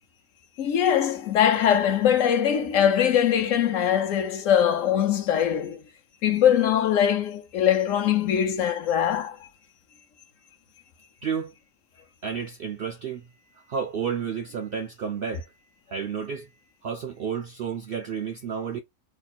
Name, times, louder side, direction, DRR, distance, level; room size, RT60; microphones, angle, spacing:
voice 1, 0.6-5.8 6.2-9.4, left 9 dB, 70° left, 1.0 m, -22 dB
voice 2, 11.2-11.5 12.2-18.8, right 7 dB, 70° right, 0.5 m, -32 dB
2.9 x 2.4 x 4.1 m
omnidirectional pair, 1.4 m